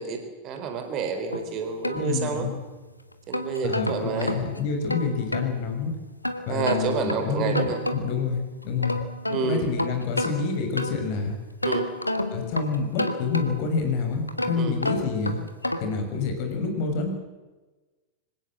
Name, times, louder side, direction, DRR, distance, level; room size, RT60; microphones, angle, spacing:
voice 1, 0.0-2.5 3.3-4.3 6.5-7.8 9.3-9.7 11.6-11.9 14.6-14.7, right 6 dB, 35° right, 6 dB, 4.2 m, -29 dB
sound 1, 1.3-2.7 3.1-5.5 6.2-8.3 8.6-11.2 11.6-13.8 14.3-16.0, left 1 dB, 85° left, 1.7 m, -31 dB
voice 2, 1.9-2.5 3.6-5.9 6.5-9.0 9.4-11.4 12.3-15.4 15.8-17.2, left 4 dB, 45° left, 5 dB, 6.1 m, -28 dB
25.5 x 17.5 x 7.7 m, 1.2 s
figure-of-eight pair, 90°, 0 cm